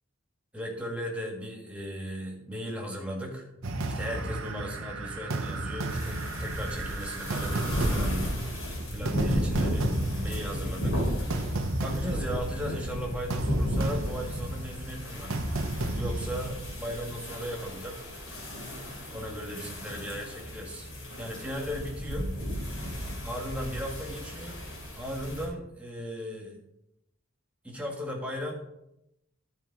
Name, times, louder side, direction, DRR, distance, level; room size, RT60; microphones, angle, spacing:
voice 1, 0.5-3.4 3.9-8.3 8.9-11.0 11.8-15.4 16.0-18.1 19.1-20.9 21.2-22.4 23.2-24.6 25.0-26.6 27.6-28.5, equal, 5° right, -1 dB, 1.7 m, -37 dB
sound 1, 3.6-16.5, right 2 dB, 70° right, 0.9 m, -34 dB
sound 2, 5.9-25.4, equal, 75° left, 3.6 m, -34 dB
13.0 x 4.6 x 4.6 m, 0.84 s
head